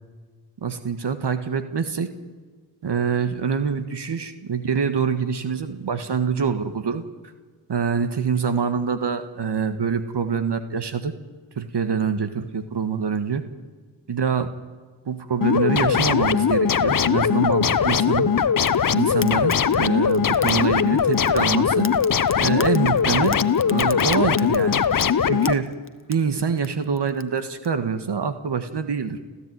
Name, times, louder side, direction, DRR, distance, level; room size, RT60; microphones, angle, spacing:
voice 1, 0.6-2.1 2.8-7.0 7.7-11.1 11.5-13.4 14.1-14.5 15.0-18.3 18.9-21.9 22.4-23.4 23.7-24.8 25.2-25.7 26.1-29.3, right 6 dB, 55° right, 10 dB, 1.7 m, -25 dB
sound 1, 15.4-25.5, left 7 dB, 40° left, 1.0 m, -20 dB
Fire, 18.6-27.7, left 4 dB, 25° left, 1.5 m, -40 dB
30.0 x 13.0 x 9.5 m, 1.5 s
supercardioid pair, 40°, 48 cm